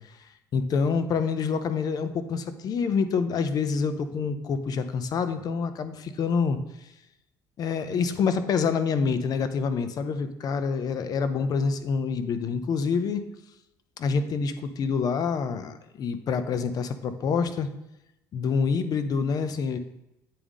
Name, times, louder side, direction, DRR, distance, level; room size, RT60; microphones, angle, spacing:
voice 1, 0.5-6.6 7.6-13.2 14.0-17.7 18.3-19.8, left 5 dB, 50° left, 10 dB, 0.6 m, -27 dB
8.5 x 3.6 x 3.6 m, 0.88 s
supercardioid pair, 90°, 8 cm